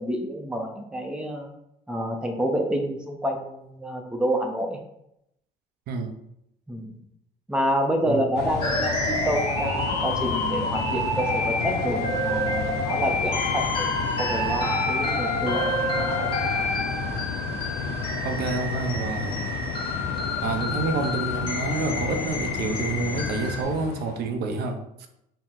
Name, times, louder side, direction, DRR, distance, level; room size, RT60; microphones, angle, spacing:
voice 1, 0.0-1.5 1.9-4.8 6.7-6.9 7.5-16.3, equal, 5° right, 2 dB, 0.5 m, -28 dB
sound 1, 8.3-24.3, left 5 dB, 75° left, 0.5 m, -32 dB
sound 2, 8.6-23.6, left 1 dB, 30° left, 1.3 m, -28 dB
voice 2, 18.2-19.5 20.4-25.1, right 3 dB, 70° right, 6 dB, 0.5 m, -28 dB
4.3 x 2.0 x 3.7 m, 0.80 s
cardioid pair, 110°, 17 cm